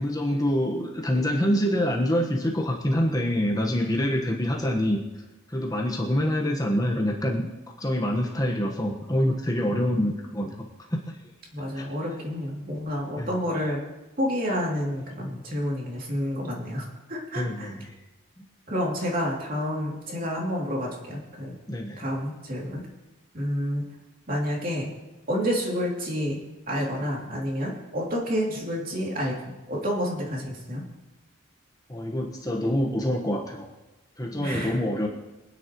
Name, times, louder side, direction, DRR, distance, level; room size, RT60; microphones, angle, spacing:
voice 1, 0.0-5.0 5.5-7.4 7.8-11.2 11.8-11.9 13.1-13.3 17.3-17.9 21.7-22.0 31.9-33.7 34.2-35.1, equal, 15° left, 0 dB, 1.2 m, -26 dB
voice 2, 11.5-13.8 14.2-17.7 18.7-21.5 22.0-22.8 23.3-23.8 24.3-24.9 25.3-30.8 34.4-34.8, equal, 45° right, -2 dB, 2.8 m, -29 dB
25.0 x 9.9 x 3.1 m, 1.1 s
head